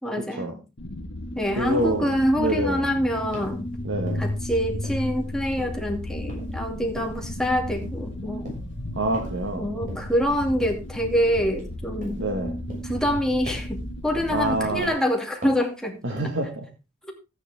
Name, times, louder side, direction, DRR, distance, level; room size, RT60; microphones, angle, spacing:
voice 1, 0.0-0.5 1.4-3.7 4.2-8.5 9.6-12.2 12.8-16.0, equal, 5° left, 1 dB, 2.5 m, -25 dB
sound 1, 0.8-14.9, left 1 dB, 70° left, 1.6 m, -34 dB
voice 2, 1.6-2.0 2.4-2.9 3.8-4.2 8.9-9.7 12.2-12.5 14.3-14.9 16.0-16.7, right 1 dB, 70° right, 2 dB, 1.8 m, -26 dB
sound 2, 1.8-2.0 2.6-2.9 3.3-3.6 4.1-4.5 4.8-5.3 5.6-5.9 6.3-6.6 7.0-7.2 7.7-8.0 8.4-8.7 9.1-9.5 9.9-10.2 10.6-10.9 11.3-11.7 12.0-12.3 12.7-13.2 13.5-13.8 14.1-14.5 14.8-15.1 15.4-15.7 16.1-16.4, left 1 dB, 45° right, 6.5 m, -40 dB
13.5 x 9.3 x 3.6 m, 0.29 s
head